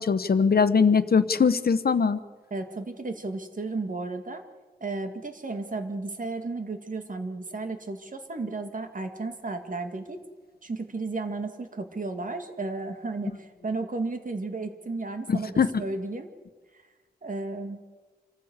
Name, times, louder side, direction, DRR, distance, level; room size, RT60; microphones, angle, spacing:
voice 1, 0.0-2.2 15.3-15.8, left 5 dB, 75° left, 12 dB, 1.0 m, -21 dB
voice 2, 2.5-4.4 4.8-10.2 10.6-16.3 17.2-17.8, right 3 dB, 55° right, 6 dB, 2.2 m, -33 dB
26.5 x 15.0 x 8.1 m, 1.4 s
wide cardioid pair, 85°, 16 cm